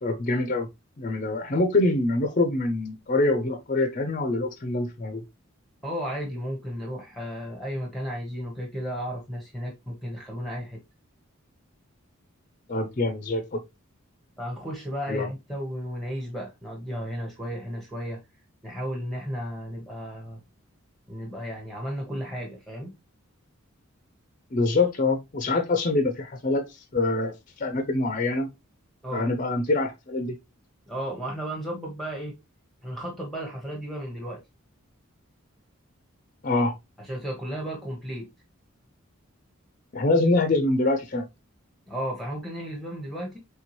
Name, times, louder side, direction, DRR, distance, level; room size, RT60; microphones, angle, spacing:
voice 1, 0.0-0.7 1.0-5.2 12.7-13.6 15.1-15.3 24.5-26.6 26.9-27.3 27.6-28.5 29.1-30.3 36.4-36.7 39.9-41.3, left 2 dB, 40° left, 0.5 m, -25 dB
voice 2, 5.8-10.8 14.4-18.2 18.6-20.4 21.1-22.9 29.0-29.3 30.9-32.3 32.8-34.4 37.0-38.3 41.9-43.4, equal, ahead, 0.9 m, -34 dB
4.4 x 3.3 x 2.9 m
head